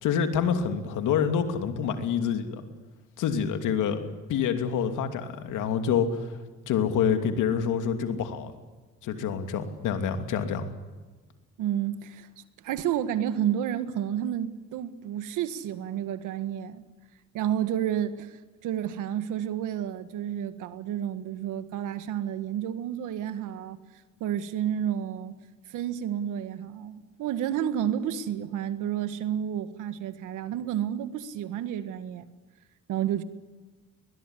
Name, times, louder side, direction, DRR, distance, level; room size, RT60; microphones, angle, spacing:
voice 1, 0.0-2.6 3.2-4.0 4.3-6.4 6.7-8.5 9.0-10.7, left 7 dB, 90° left, 2.8 m, -27 dB
voice 2, 11.6-12.3 12.6-16.8 17.3-23.8 24.2-25.4 25.7-32.3 32.9-33.2, right 10 dB, 90° right, 1.7 m, -30 dB
21.5 x 21.0 x 9.9 m
cardioid pair, 90°, 30 cm